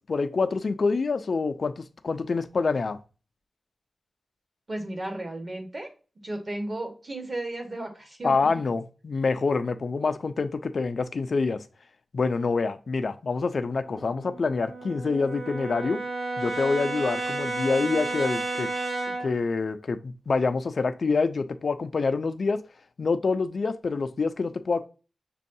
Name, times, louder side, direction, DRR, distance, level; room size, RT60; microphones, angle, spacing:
voice 1, 0.1-3.0 8.2-11.6 12.1-16.0 16.4-18.7 19.1-22.6 23.0-24.9, left 4 dB, 60° left, 0.4 m, -26 dB
voice 2, 4.7-5.9 6.2-8.3, right 1 dB, 40° right, 1.2 m, -34 dB
Brass instrument, 13.9-19.4, right 2 dB, 60° right, 0.9 m, -32 dB
6.1 x 2.3 x 2.6 m
wide cardioid pair, 105°, 0 cm